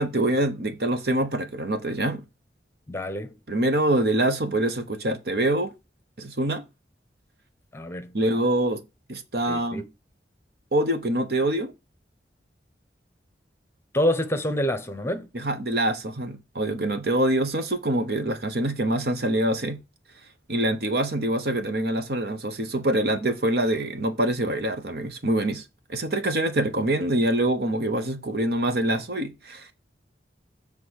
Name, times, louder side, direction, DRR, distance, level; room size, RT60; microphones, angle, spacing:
voice 1, 0.0-2.2 3.5-5.7 6.2-6.6 8.1-8.8 9.1-9.8 10.7-11.7 15.3-19.8 20.5-25.6 25.9-29.7, right 1 dB, 60° right, 1.0 m, -25 dB
voice 2, 2.9-3.3 7.7-8.1 9.5-9.8 13.9-15.2, left 1 dB, 15° left, 0.9 m, -27 dB
7.5 x 3.6 x 6.4 m
head